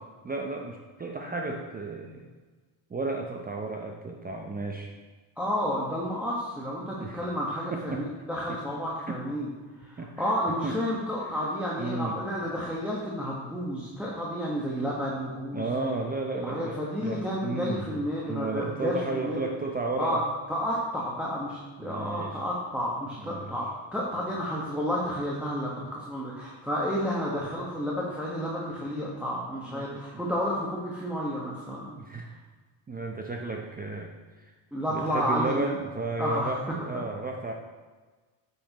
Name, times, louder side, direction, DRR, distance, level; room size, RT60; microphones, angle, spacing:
voice 1, 0.2-2.3 2.9-4.9 6.9-7.2 7.7-8.0 8.5-8.6 9.1-9.2 10.0-10.3 10.6-10.8 11.8-12.2 14.6-14.8 15.5-17.9 18.3-20.2 21.8-22.4 23.2-23.6 29.7-30.2 32.0-32.3 32.9-34.5 34.9-37.5, right 3 dB, 20° right, 1 dB, 0.6 m, -33 dB
voice 2, 5.4-9.5 9.8-15.7 16.3-19.4 20.0-20.2 20.5-31.9 34.7-35.6 36.2-36.5, equal, 5° right, -5 dB, 1.3 m, -31 dB
8.4 x 8.2 x 3.0 m, 1.3 s
cardioid pair, 100°, 48 cm